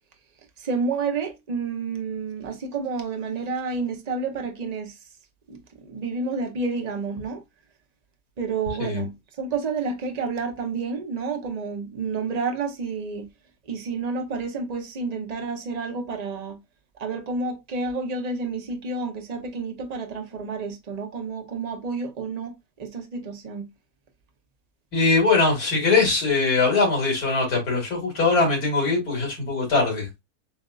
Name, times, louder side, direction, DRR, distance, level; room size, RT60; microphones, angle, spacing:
voice 1, 0.6-4.9 5.5-5.6 5.8-7.4 8.4-9.1 9.4-13.3 13.7-16.6 17.0-22.5 22.8-23.7, right 4 dB, 30° right, 0.9 m, -29 dB
voice 2, 24.9-30.1, left 3 dB, 85° left, 2.4 m, -21 dB
7.1 x 2.6 x 2.4 m
omnidirectional pair, 1.6 m